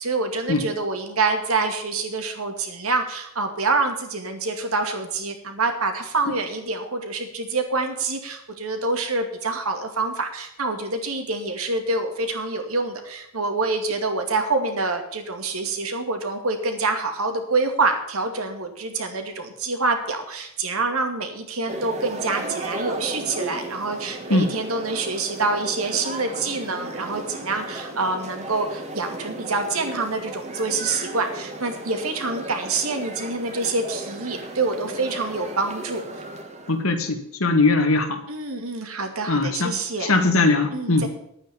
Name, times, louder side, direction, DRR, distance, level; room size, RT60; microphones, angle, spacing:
voice 1, 0.0-36.0 38.3-40.1 40.7-41.1, right 3 dB, 85° right, 5 dB, 2.3 m, -26 dB
sound 1, 21.7-36.8, right 2 dB, 35° right, 1.7 m, -35 dB
voice 2, 36.7-38.2 39.3-41.1, left 3 dB, 75° left, 6 dB, 1.9 m, -21 dB
11.0 x 9.0 x 7.1 m, 0.76 s
head